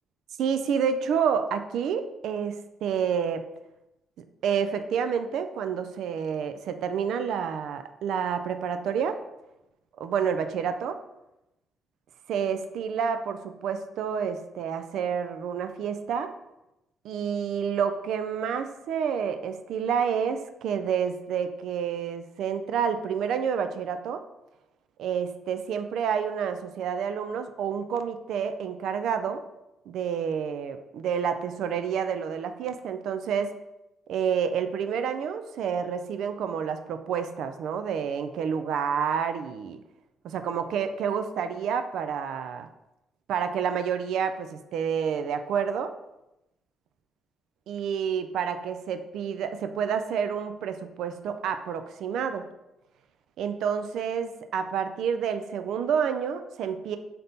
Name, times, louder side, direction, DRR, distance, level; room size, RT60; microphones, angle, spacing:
voice 1, 0.4-3.4 4.4-9.2 10.0-11.0 12.3-16.3 17.0-24.2 25.0-29.4 29.9-33.6 34.1-39.8 40.2-42.7 43.3-45.9 47.7-52.5 53.4-57.0, right 7 dB, 80° right, 9 dB, 0.3 m, -29 dB
3.5 x 2.8 x 3.8 m, 0.92 s
cardioid pair, 90°, 0 cm